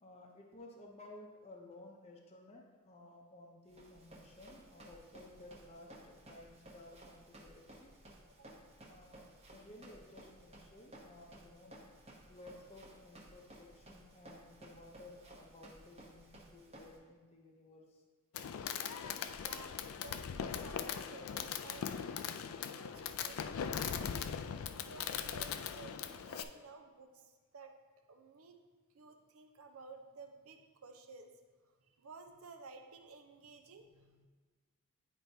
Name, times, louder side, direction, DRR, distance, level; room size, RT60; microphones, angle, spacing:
voice 1, 0.0-7.9 8.8-9.2 9.5-11.7 12.3-18.0, left 2 dB, 30° left, 0 dB, 0.7 m, -56 dB
Run, 3.7-17.0, right 1 dB, 30° right, 0.9 m, -57 dB
voice 2, 8.3-8.6 19.4-22.0 22.7-24.0 24.8-27.7 28.1-28.6 28.9-31.3 32.0-34.3, right 4 dB, 70° right, 6 dB, 0.6 m, -54 dB
Fireworks, 18.3-26.4, left 7 dB, 70° left, 0.3 m, -40 dB
10.0 x 4.5 x 2.7 m, 1.4 s
head